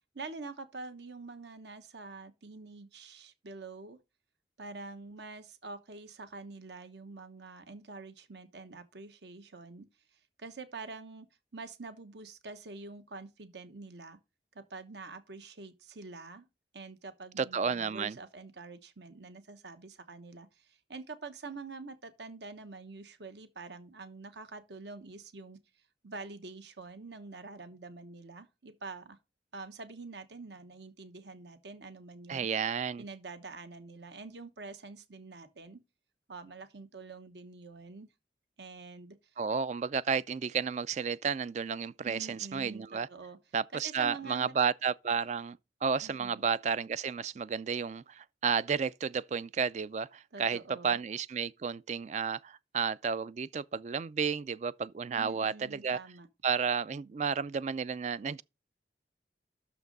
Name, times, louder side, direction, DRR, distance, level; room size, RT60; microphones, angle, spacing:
voice 1, 0.1-4.0 4.6-9.9 10.1-11.3 11.5-14.2 14.5-16.5 16.7-25.6 26.0-29.2 29.5-32.5 33.0-35.8 36.3-38.1 38.6-39.2 42.0-43.4 43.7-44.7 46.0-46.4 50.3-51.0 55.1-56.3, right 3 dB, 70° right, 1.1 m, -46 dB
voice 2, 17.4-18.2 32.3-33.0 39.4-43.1 43.5-56.0 56.4-58.4, right 6 dB, 40° right, 0.3 m, -32 dB
6.6 x 5.8 x 5.3 m
head